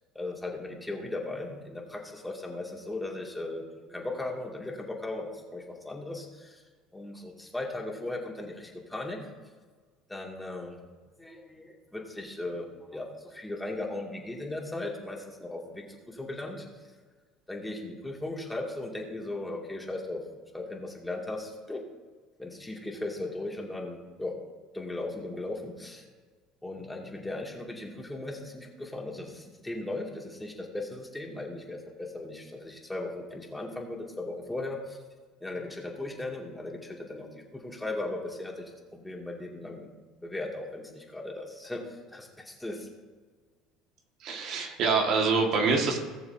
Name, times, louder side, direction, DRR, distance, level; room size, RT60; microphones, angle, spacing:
voice 1, 0.1-6.6 6.9-9.3 10.1-10.8 11.2-16.6 17.5-20.2 20.5-21.8 22.4-24.4 24.7-26.0 26.6-35.0 35.4-37.3 37.5-38.6 38.9-39.9 40.2-42.9, left 2 dB, 10° left, -1 dB, 2.5 m, -37 dB
voice 2, 44.2-46.0, right 4 dB, 60° right, 1 dB, 1.9 m, -25 dB
19.0 x 6.8 x 2.8 m, 1.4 s
hypercardioid pair, 70°, 0 cm